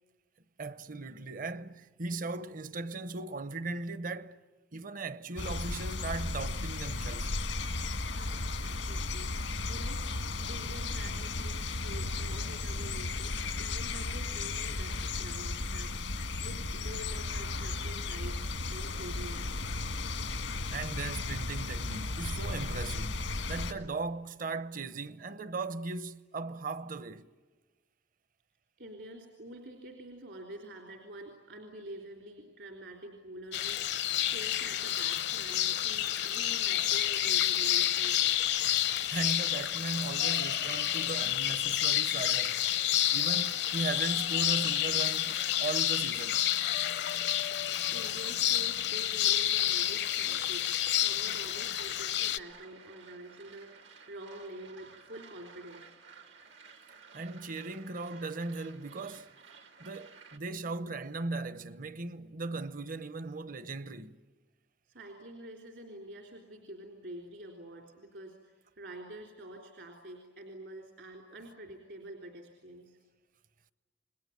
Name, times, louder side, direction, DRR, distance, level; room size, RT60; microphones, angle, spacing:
voice 1, 0.6-4.4 4.7-7.4 7.8-7.9 20.3-20.4 20.7-27.3 38.6-42.8 43.1-46.5 57.1-59.3 59.8-64.2, right 3 dB, 50° right, 0.9 m, -38 dB
sound 1, 5.4-23.7, left 3 dB, 90° left, 1.6 m, -35 dB
voice 2, 7.8-10.1 10.5-15.9 16.4-19.6 28.8-38.2 47.9-50.7 50.9-56.0 64.9-73.0, right 1 dB, 70° right, 3.5 m, -47 dB
sound 2, 33.5-52.4, left 12 dB, 65° left, 0.7 m, -29 dB
sound 3, 42.5-60.4, right 5 dB, 85° right, 2.4 m, -56 dB
28.5 x 21.5 x 9.4 m
head